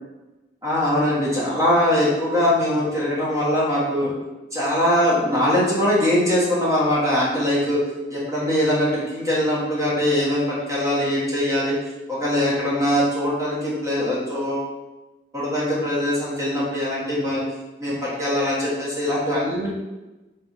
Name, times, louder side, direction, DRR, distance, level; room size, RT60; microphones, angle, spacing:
voice 1, 0.6-4.1 4.5-7.8 8.1-11.7 12.1-14.7 15.3-17.4 17.8-19.7, left 1 dB, 20° right, -7 dB, 1.2 m, -22 dB
4.1 x 3.9 x 3.0 m, 1.1 s
head